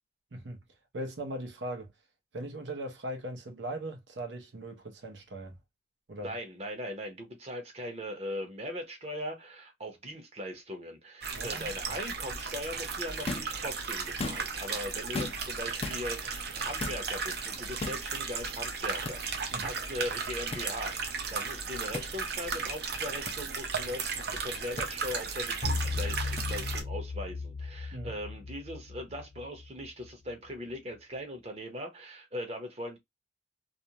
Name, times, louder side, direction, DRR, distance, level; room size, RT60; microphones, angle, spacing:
voice 1, 0.3-0.6 0.9-1.9 2.3-5.6 6.1-6.4 11.3-12.0 19.5-19.7 27.9-28.1, right 1 dB, 90° right, 0.7 m, -39 dB
voice 2, 6.2-33.0, equal, 35° right, 0.8 m, -40 dB
sound 1, 11.2-26.8, right 5 dB, 60° right, 0.6 m, -35 dB
sound 2, 13.2-13.6 14.1-14.6 15.1-15.5 15.8-16.0 16.8-17.0 17.8-18.0 19.0-19.2 20.5-20.7 21.9-22.1 23.3-23.4 24.8-24.9 26.4-26.5, left 3 dB, 35° left, 0.4 m, -36 dB
sound 3, 25.6-30.1, left 3 dB, 50° left, 0.8 m, -36 dB
2.4 x 2.1 x 2.8 m
head